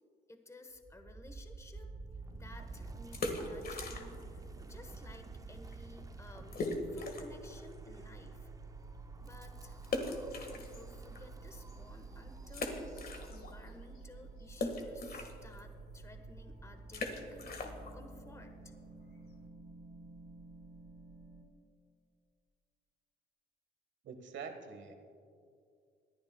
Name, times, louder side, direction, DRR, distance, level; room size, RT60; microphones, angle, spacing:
voice 1, 0.3-1.9 2.3-8.5 9.2-18.7, left 2 dB, 15° left, 6 dB, 1.1 m, -55 dB
Wind, 0.7-13.8, right 3 dB, 15° right, 0.5 m, -52 dB
sound 1, 1.8-21.4, right 3 dB, 40° right, 2.8 m, -51 dB
sound 2, 3.0-4.4 4.6-4.7 5.3-5.4 5.7-5.8 6.5-7.4 7.9-8.0 9.8-11.2 11.7-11.8 12.5-13.7 14.0-19.5, left 2 dB, 50° left, 1.6 m, -40 dB
voice 2, 24.0-25.0, right 5 dB, 65° right, 6 dB, 1.4 m, -45 dB
24.0 x 11.0 x 2.2 m, 2.4 s
cardioid pair, 90°, 20 cm